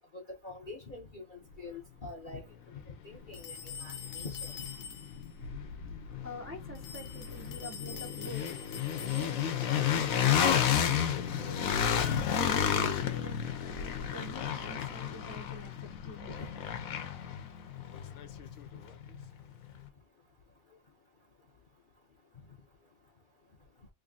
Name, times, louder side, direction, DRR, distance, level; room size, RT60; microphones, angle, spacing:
voice 1, 0.1-2.5 3.0-4.7 7.5-7.6 16.4-16.5, left 3 dB, 45° left, 0.7 m, -45 dB
sound 1, 2.8-2.9 3.3-19.3, left 8 dB, 65° left, 1.0 m, -32 dB
sound 2, 3.3-5.3 6.8-9.7, left 7 dB, 90° left, 1.3 m, -45 dB
voice 2, 5.5-16.4, equal, 10° right, 0.6 m, -47 dB
3.1 x 2.6 x 3.7 m
omnidirectional pair, 1.8 m